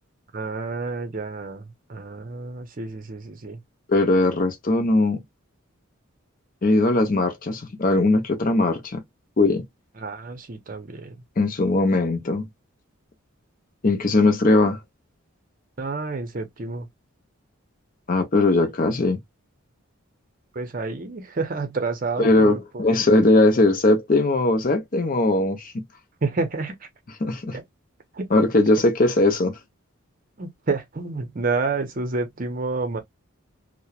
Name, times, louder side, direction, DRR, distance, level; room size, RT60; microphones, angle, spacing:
voice 1, 0.3-3.6 10.0-11.1 15.8-16.9 20.5-22.6 26.2-26.7 27.5-27.6 28.1-28.3 30.4-33.0, right 3 dB, 40° right, 0.6 m, -29 dB
voice 2, 3.9-5.2 6.6-9.0 9.4-9.6 11.4-12.5 13.8-14.8 18.1-19.2 22.2-25.7 27.2-27.6 28.3-29.6, left 2 dB, 40° left, 0.6 m, -19 dB
2.9 x 2.1 x 2.3 m
head